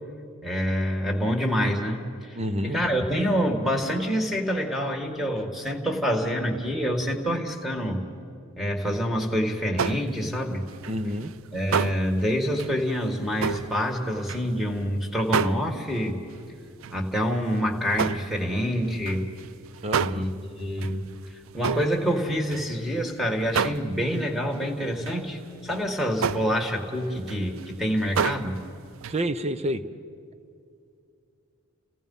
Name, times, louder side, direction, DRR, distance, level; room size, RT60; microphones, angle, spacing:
voice 1, 0.4-8.0 8.6-10.7 11.5-16.2 16.9-19.3 20.1-28.6, equal, ahead, 2 dB, 1.9 m, -27 dB
voice 2, 2.3-2.8 10.9-11.3 19.8-20.2 29.1-29.8, right 1 dB, 30° right, 11 dB, 0.8 m, -28 dB
sound 1, 9.8-10.4 10.7-14.8 15.2-16.4 16.8-17.1 17.4-23.1 23.4-24.3 24.5-24.6 25.0-25.3 25.7-25.9 26.2-28.7 28.9-29.2, right 6 dB, 65° right, 0.4 m, -30 dB
30.0 x 17.0 x 5.5 m, 2.5 s
head